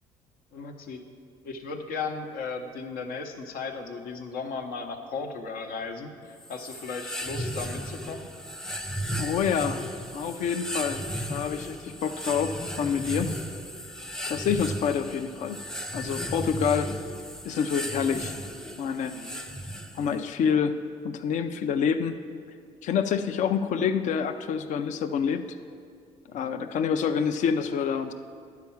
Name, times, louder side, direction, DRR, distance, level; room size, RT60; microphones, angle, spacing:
voice 1, 0.5-1.0 1.4-8.3 19.1-19.4 26.3-26.7, left 4 dB, 75° left, 5 dB, 0.9 m, -36 dB
sound 1, 6.4-20.2, equal, 5° left, 0.5 m, -35 dB
voice 2, 9.2-9.8 10.1-11.0 11.3-13.3 14.3-15.6 15.9-16.9 17.4-18.3 18.8-19.1 19.9-20.8 21.0-22.2 22.8-25.5 26.3-28.1, left 7 dB, 55° left, 8 dB, 0.5 m, -27 dB
10.5 x 4.7 x 7.1 m, 2.3 s
cardioid pair, 100°, 15 cm